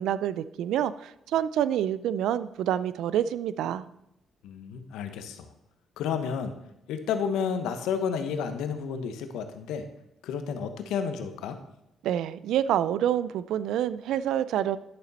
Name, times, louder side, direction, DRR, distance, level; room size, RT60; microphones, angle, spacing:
voice 1, 0.0-3.8 12.0-14.8, right 10 dB, 85° right, 16 dB, 0.4 m, -27 dB
voice 2, 4.4-5.5 6.0-6.5 6.9-9.8 10.2-11.6, left 7 dB, 90° left, 8 dB, 1.0 m, -31 dB
11.0 x 6.8 x 4.1 m, 0.85 s
cardioid pair, 90°, 0 cm